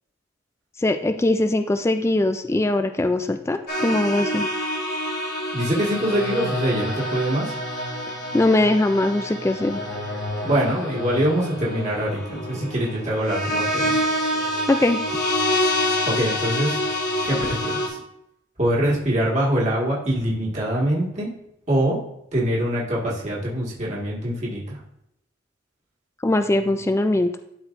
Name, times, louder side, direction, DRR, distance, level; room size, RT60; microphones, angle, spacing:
voice 1, 0.8-4.5 8.3-9.8 14.7-15.0 26.2-27.3, left 2 dB, 15° left, 8 dB, 0.3 m, -21 dB
sound 1, 3.7-17.9, left 1 dB, 55° left, 1.5 m, -27 dB
voice 2, 5.5-7.5 10.4-14.0 16.1-16.8 17.2-17.8 18.6-21.3 21.7-22.0 22.3-24.8, right 1 dB, 40° right, -5 dB, 1.7 m, -24 dB
12.5 x 4.5 x 2.6 m, 0.78 s
head